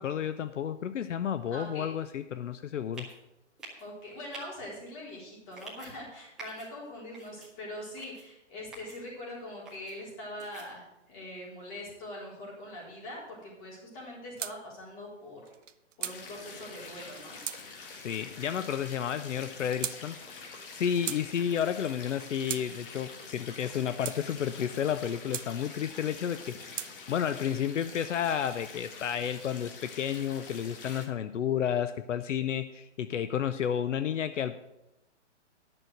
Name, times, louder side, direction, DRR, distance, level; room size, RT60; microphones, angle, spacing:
voice 1, 0.0-3.1 18.0-34.6, left 9 dB, 80° left, 12 dB, 0.7 m, -31 dB
voice 2, 1.5-1.9 3.8-15.4 16.0-17.4, left 1 dB, 30° left, -4 dB, 4.2 m, -43 dB
sound 1, 2.9-3.2 3.6-3.8 4.3-4.4 5.5-5.9 6.4-6.7 7.1-7.5 8.0-8.2 8.7-9.0 9.7-9.9 10.4-10.7, right 3 dB, ahead, 0.5 m, -46 dB
sound 2, 14.4-14.6 15.5-16.2 17.0-17.6 18.5-18.9 19.7-20.0 20.7-21.2 22.1-22.7 23.5-24.2 25.0-25.5 26.3-26.9, right 9 dB, 85° right, 0.7 m, -38 dB
sound 3, 16.0-31.0, left 4 dB, 45° left, 1.7 m, -46 dB
11.0 x 6.3 x 6.3 m, 0.90 s
hypercardioid pair, 155°, 36 cm